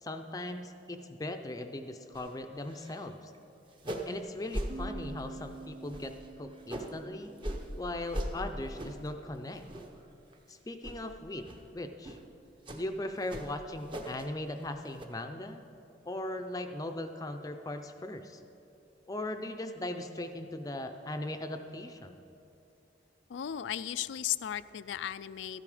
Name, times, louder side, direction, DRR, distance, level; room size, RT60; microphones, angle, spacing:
voice 1, 0.0-3.3 4.1-7.3 7.7-9.6 10.5-11.5 11.7-12.2 12.7-15.6 16.0-18.4 19.1-22.2, left 1 dB, 20° left, 6 dB, 0.5 m, -39 dB
sound 1, 2.1-2.3 2.6-3.1 3.3-3.4 3.7-4.2 4.5-4.7 5.2-5.5 5.9-7.0 7.4-7.6 8.1-8.3 8.7-9.1 9.5-10.0 10.3-10.5 10.8-11.0 11.4-11.6 12.0-12.2 12.6-12.8 13.3-14.3 14.6-15.0, right 1 dB, 25° right, 0.8 m, -39 dB
sound 2, 4.7-8.3, right 3 dB, 50° right, 0.3 m, -48 dB
voice 2, 23.3-25.6, left 10 dB, 85° left, 15 dB, 0.4 m, -35 dB
13.5 x 10.5 x 4.9 m, 2.7 s
head